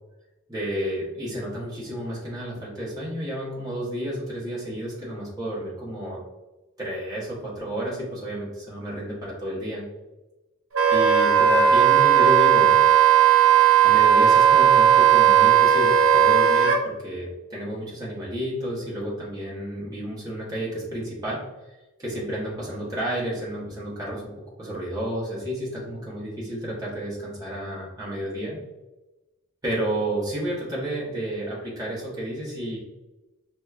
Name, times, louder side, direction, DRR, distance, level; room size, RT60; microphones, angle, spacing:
voice 1, 0.5-6.2 6.8-9.8 10.9-12.8 13.8-21.4 22.0-24.3 24.6-28.6 29.6-32.8, right 1 dB, 20° right, -7 dB, 1.1 m, -31 dB
Wind instrument woodwind instrument, 10.7-16.8, right 9 dB, 75° right, 0.5 m, -16 dB
4.8 x 2.3 x 2.4 m, 1.1 s
head